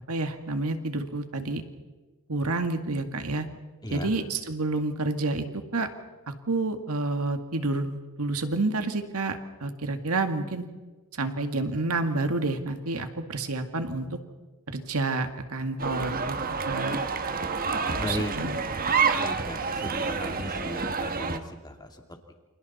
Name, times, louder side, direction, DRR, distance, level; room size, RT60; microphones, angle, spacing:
voice 1, 0.1-1.6 2.3-3.5 3.9-5.9 6.3-10.7 11.2-14.2 14.7-16.4 16.7-17.0 18.0-18.6, right 2 dB, 90° right, 7 dB, 1.9 m, -29 dB
sound 1, 15.8-21.4, right 5 dB, 40° right, 1.3 m, -28 dB
voice 2, 18.0-18.3 19.2-21.7, left 1 dB, 20° left, 3 dB, 2.5 m, -36 dB
29.5 x 27.0 x 4.3 m, 1.2 s
head